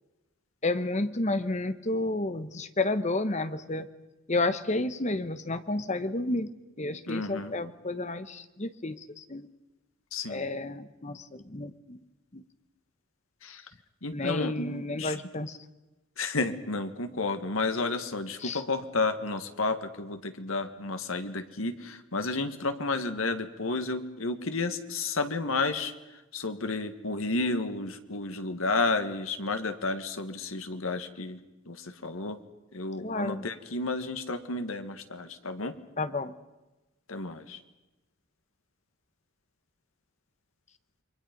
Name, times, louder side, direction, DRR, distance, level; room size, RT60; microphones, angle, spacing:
voice 1, 0.6-3.9 4.3-6.5 6.8-9.5 10.3-12.0 12.3-12.4 14.1-15.6 18.4-18.6 33.0-33.4 36.0-36.3, left 2 dB, 35° left, 12 dB, 1.0 m, -31 dB
voice 2, 7.1-7.5 10.1-10.4 13.4-13.6 14.0-15.2 16.2-25.9 26.3-31.4 31.7-32.4 32.7-35.8 37.1-37.6, left 3 dB, 80° left, 8 dB, 1.7 m, -31 dB
29.0 x 23.0 x 5.3 m, 1.0 s
head